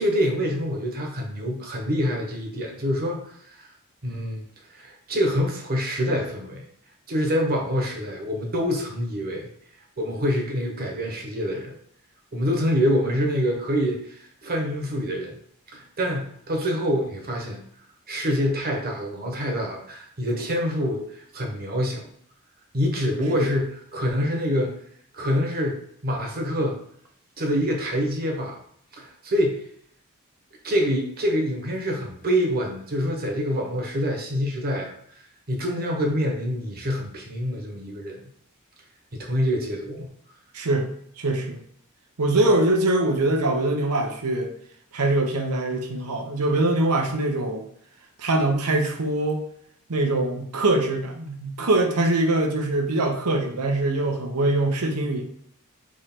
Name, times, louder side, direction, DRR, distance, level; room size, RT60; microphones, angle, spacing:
voice 1, 0.0-3.3 4.0-4.4 4.8-6.6 7.1-9.5 10.0-11.7 12.3-15.3 15.7-17.6 18.1-22.1 22.7-24.8 25.1-26.8 27.4-28.6 29.0-29.6 30.6-34.9 35.5-38.2 39.1-40.1, equal, 45° right, 1 dB, 1.1 m, -26 dB
voice 2, 40.5-40.9 41.2-41.6 42.2-44.5 44.9-47.6 48.2-49.4 49.9-55.2, right 2 dB, 90° right, 3 dB, 0.9 m, -23 dB
3.7 x 3.1 x 4.5 m, 0.65 s
head